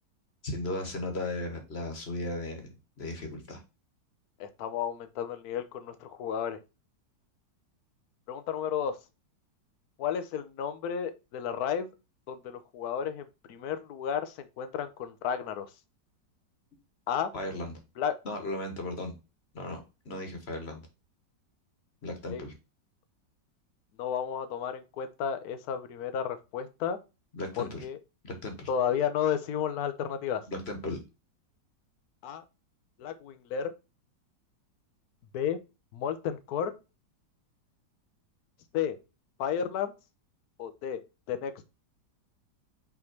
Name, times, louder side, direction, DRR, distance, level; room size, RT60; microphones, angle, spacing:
voice 1, 0.4-2.7 3.0-3.6 17.3-17.8 18.2-19.1 19.5-20.8 22.0-22.5 27.3-27.8 28.2-28.7 30.5-31.0, left 1 dB, 35° left, 4 dB, 1.6 m, -36 dB
voice 2, 4.4-6.6 8.3-9.0 10.0-11.9 12.3-15.7 17.1-17.3 18.0-18.1 22.3-22.4 24.0-27.0 27.6-28.0 28.7-30.4 32.2-32.4 33.0-33.7 35.3-35.6 35.9-36.7 38.7-39.0 39.4-39.9 40.6-41.0 41.3-41.6, left 8 dB, 65° left, 10 dB, 1.2 m, -32 dB
5.7 x 3.8 x 4.5 m, 0.28 s
omnidirectional pair, 1.9 m